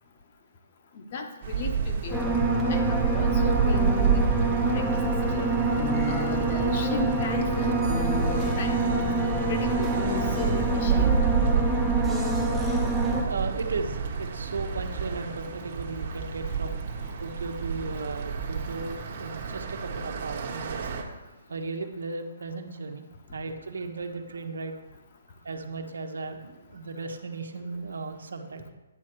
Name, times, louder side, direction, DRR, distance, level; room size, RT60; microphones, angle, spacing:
voice 1, 1.0-2.3 2.7-4.4 4.7-5.0 5.3-5.6 6.1-8.9 9.2-11.1, left 4 dB, 35° left, 5 dB, 1.0 m, -36 dB
sound 1, 1.4-21.0, right 6 dB, 40° right, 1.2 m, -30 dB
sound 2, 2.1-13.2, right 2 dB, ahead, 0.8 m, -26 dB
voice 2, 13.2-16.8 17.2-20.9 21.5-24.8 25.4-28.7, right 3 dB, 85° right, 5 dB, 1.2 m, -36 dB
9.7 x 6.3 x 4.7 m, 1.1 s
hypercardioid pair, 170°, 0 cm